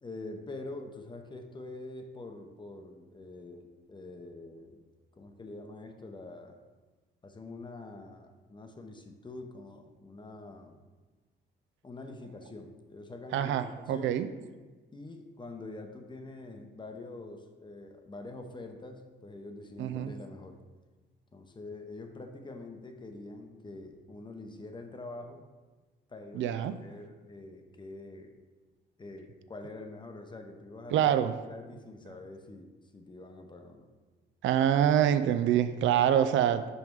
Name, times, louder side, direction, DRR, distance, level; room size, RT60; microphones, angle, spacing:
voice 1, 0.0-4.8 5.2-6.6 7.2-10.8 11.8-13.5 13.9-14.2 14.9-20.6 21.3-25.5 26.1-28.3 29.0-31.1 31.5-33.9, left 2 dB, 25° left, 5 dB, 0.8 m, -45 dB
voice 2, 13.3-14.3 19.8-20.1 26.3-26.7 30.9-31.3 34.4-36.7, right 10 dB, 75° right, 11 dB, 0.4 m, -25 dB
5.4 x 4.9 x 4.6 m, 1.3 s
cardioid pair, 90°, 20 cm